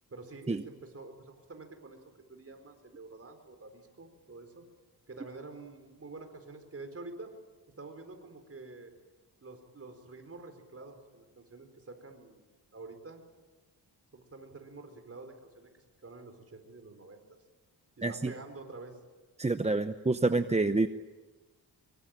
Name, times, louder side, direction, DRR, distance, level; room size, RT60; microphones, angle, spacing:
voice 1, 0.1-2.0 2.3-4.6 5.1-7.3 7.8-8.9 9.4-13.2 14.1-17.2 18.0-19.0, right 3 dB, 35° right, 6 dB, 4.4 m, -48 dB
voice 2, 18.0-18.3 19.4-20.9, right 3 dB, 15° right, 9 dB, 0.8 m, -27 dB
25.0 x 23.0 x 9.0 m, 1.2 s
wide cardioid pair, 115°, 40 cm